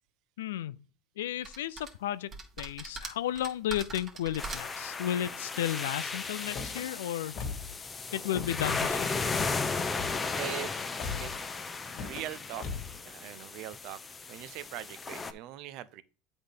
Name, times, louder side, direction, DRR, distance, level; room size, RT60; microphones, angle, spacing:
voice 1, 0.4-0.8 1.2-2.3 2.6-7.4 8.1-9.1, left 12 dB, 90° left, 0.3 m, -33 dB
sound 1, 1.4-1.9 2.3-4.9, right 3 dB, 35° right, 1.6 m, -41 dB
sound 2, 4.4-15.3, left 4 dB, 20° left, 0.7 m, -35 dB
Car / Slam, 6.4-6.8 7.3-7.8 8.1-8.7 9.3-9.6 9.9-10.5 11.0-11.4 11.9-12.3 12.6-13.0, left 5 dB, 55° left, 1.6 m, -39 dB
voice 2, 10.4-10.7 11.2-11.5 12.0-12.6 13.0-14.0 14.3-16.0, right 14 dB, 60° right, 0.6 m, -41 dB
8.2 x 4.0 x 5.1 m
supercardioid pair, 100°, 0 cm